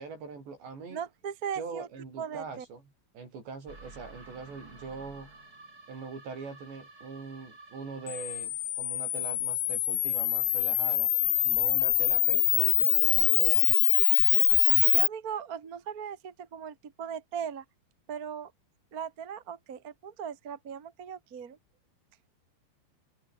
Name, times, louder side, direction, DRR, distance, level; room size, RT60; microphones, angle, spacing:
voice 1, 0.0-1.0 1.5-5.3 5.9-11.1 11.4-13.9, right 4 dB, 70° right, 10.0 m, -42 dB
voice 2, 0.9-1.9 2.2-2.6 14.8-17.6 18.1-18.5 18.9-21.6, right 7 dB, 40° right, 1.3 m, -38 dB
sound 1, 3.7-8.6, right 2 dB, 20° right, 5.6 m, -52 dB
Camera, 8.1-15.1, left 14 dB, 65° left, 2.2 m, -24 dB
open air
omnidirectional pair, 5.3 m